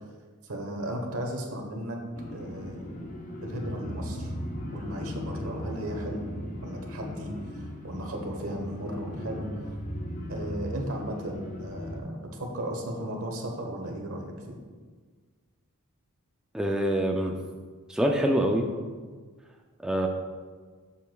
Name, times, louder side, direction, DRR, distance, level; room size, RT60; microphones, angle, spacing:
voice 1, 0.4-2.0 2.3-3.1 3.4-4.3 4.7-6.3 6.6-9.5 10.3-14.6, right 1 dB, 65° right, 2 dB, 1.1 m, -35 dB
sound 1, 2.1-12.0, left 1 dB, 35° left, 0.7 m, -37 dB
voice 2, 16.5-17.4 17.9-18.7 19.8-20.1, equal, 5° right, 1 dB, 0.3 m, -25 dB
7.9 x 6.9 x 2.3 m, 1.5 s
head